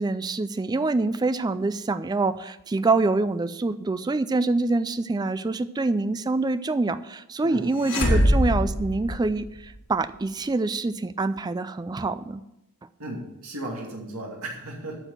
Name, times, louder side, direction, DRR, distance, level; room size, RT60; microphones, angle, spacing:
voice 1, 0.0-12.4, right 3 dB, 20° right, 14 dB, 0.3 m, -25 dB
sound 1, 7.8-9.8, equal, 90° left, 3.5 m, -23 dB
voice 2, 13.0-15.0, right 1 dB, 70° right, -1 dB, 2.3 m, -35 dB
9.0 x 6.3 x 7.7 m, 0.89 s
head